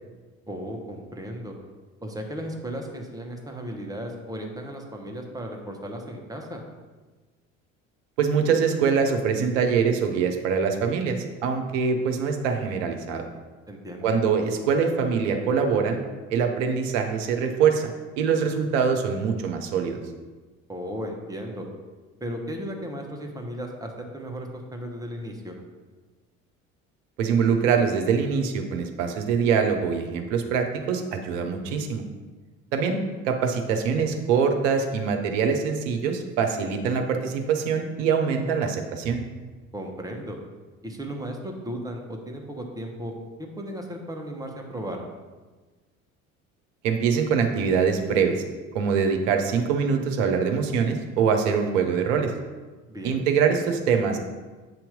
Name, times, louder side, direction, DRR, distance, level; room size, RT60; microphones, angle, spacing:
voice 1, 0.5-1.5 2.0-6.6 13.7-14.1 20.7-21.7 22.2-25.6 33.9-34.1 39.7-40.4 40.8-45.0 52.9-53.2, equal, 10° right, 2 dB, 1.1 m, -35 dB
voice 2, 8.2-13.3 14.0-16.0 16.3-17.9 18.2-20.0 27.2-32.0 32.7-39.2 46.8-48.3 48.7-52.3 53.0-54.2, right 6 dB, 65° right, 4 dB, 0.9 m, -24 dB
7.7 x 3.0 x 5.1 m, 1.3 s
figure-of-eight pair, 60°, 40 cm